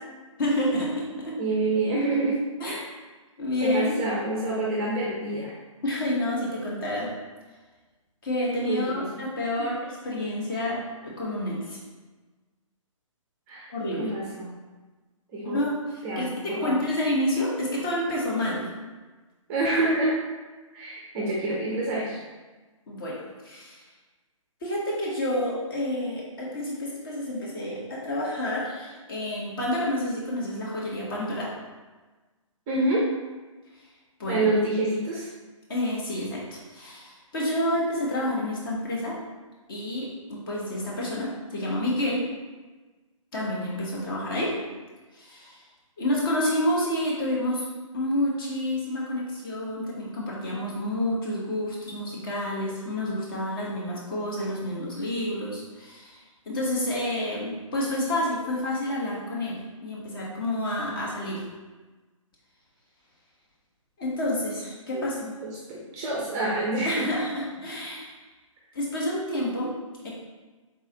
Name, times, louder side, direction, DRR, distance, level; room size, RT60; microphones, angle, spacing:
voice 1, 0.4-1.4 2.6-2.8 3.4-3.8 5.8-7.1 8.2-9.7 10.0-11.8 13.7-14.1 15.4-18.7 22.9-23.8 24.6-31.5 34.2-34.5 35.7-39.2 39.7-42.3 43.3-44.5 45.1-45.6 46.0-47.6 47.9-61.4 64.0-65.2 66.8-68.2 68.7-69.7 70.0-70.1, left 1 dB, 40° left, -5 dB, 1.3 m, -29 dB
voice 2, 1.3-2.4 2.6-2.8 3.6-5.5 8.6-9.2 9.6-9.7 13.5-14.5 15.3-15.6 16.0-16.8 19.5-20.2 20.7-22.2 32.7-33.1 34.2-35.3 64.9-65.1 65.7-67.1, right 2 dB, 15° right, -4 dB, 0.5 m, -27 dB
3.9 x 3.1 x 3.9 m, 1.3 s
figure-of-eight pair, 130°, 17 cm